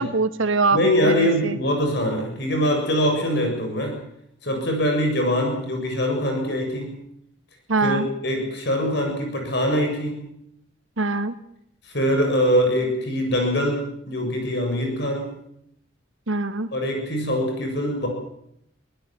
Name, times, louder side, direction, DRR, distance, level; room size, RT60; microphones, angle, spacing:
voice 1, 0.0-1.6 7.7-8.1 11.0-11.4 16.3-16.7, right 3 dB, 80° right, 11 dB, 1.7 m, -23 dB
voice 2, 0.7-4.0 4.4-6.9 7.8-10.2 11.8-15.3 16.7-18.1, equal, 55° left, 3 dB, 7.4 m, -23 dB
24.0 x 19.0 x 7.7 m, 0.74 s
head